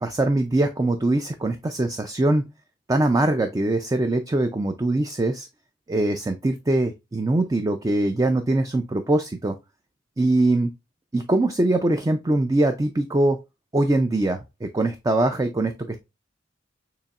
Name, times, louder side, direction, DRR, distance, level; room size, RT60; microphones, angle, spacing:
voice 1, 0.0-2.4 2.9-5.5 5.9-9.6 10.2-10.7 11.1-13.4 13.7-16.0, right 2 dB, 20° right, 7 dB, 0.4 m, -22 dB
6.8 x 2.9 x 2.4 m, 0.23 s
head